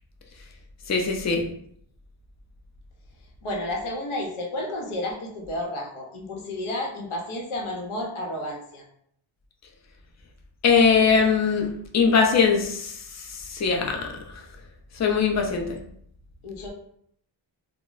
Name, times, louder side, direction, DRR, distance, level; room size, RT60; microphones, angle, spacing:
voice 1, 0.9-1.5 10.6-11.7 11.9-12.9 13.5-14.1 15.0-15.8, left 5 dB, 35° left, 2 dB, 0.5 m, -20 dB
voice 2, 3.4-8.8 16.4-16.7, left 1 dB, 80° left, 0 dB, 0.9 m, -31 dB
2.2 x 2.0 x 3.8 m, 0.68 s
cardioid pair, 75°, 49 cm